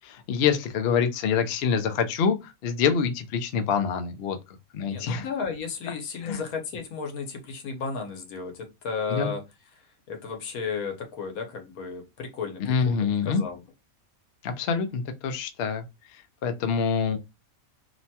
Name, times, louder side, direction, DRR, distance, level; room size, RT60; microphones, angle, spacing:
voice 1, 0.1-4.4 4.7-5.3 6.2-6.4 9.1-9.3 12.6-13.4 14.4-15.8 16.1-17.2, left 6 dB, 65° left, 0.6 m, -26 dB
voice 2, 4.9-9.4 10.1-13.6, left 5 dB, 90° left, 1.2 m, -34 dB
2.9 x 2.2 x 2.7 m
omnidirectional pair, 1.5 m